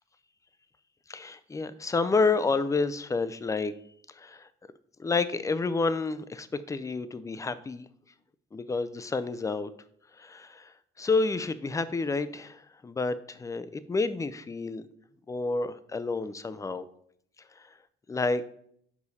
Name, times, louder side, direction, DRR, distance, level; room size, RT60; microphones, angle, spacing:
voice 1, 1.1-3.7 4.2-4.5 5.0-7.9 8.5-9.7 10.2-10.7 11.0-14.8 15.3-16.8 18.1-18.4, left 3 dB, 15° left, 14 dB, 0.4 m, -29 dB
5.5 x 4.9 x 4.1 m, 0.67 s
cardioid pair, 90°, 20 cm